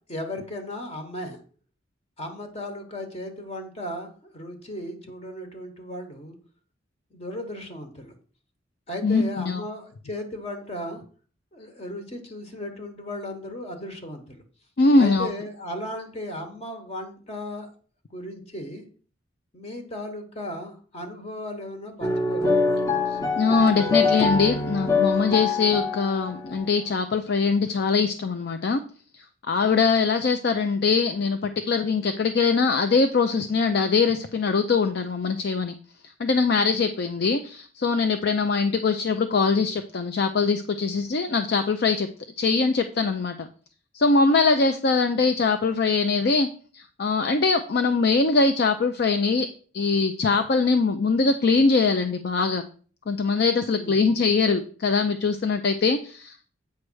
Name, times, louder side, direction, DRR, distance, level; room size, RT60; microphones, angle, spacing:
voice 1, 0.1-1.4 2.2-6.4 7.1-8.1 8.9-11.0 11.5-14.4 15.0-17.7 18.1-18.8 19.5-22.8 53.7-54.0, left 1 dB, 35° left, 5 dB, 1.1 m, -36 dB
voice 2, 9.0-9.6 14.8-15.3 23.4-28.8 29.5-35.7 36.2-42.1 42.4-43.5 43.9-46.5 46.7-49.5 49.7-52.6 53.1-56.5, left 4 dB, 55° left, 8 dB, 0.5 m, -22 dB
sound 1, 22.0-26.7, left 4 dB, 15° left, 0.8 m, -24 dB
8.3 x 3.2 x 6.1 m, 0.43 s
head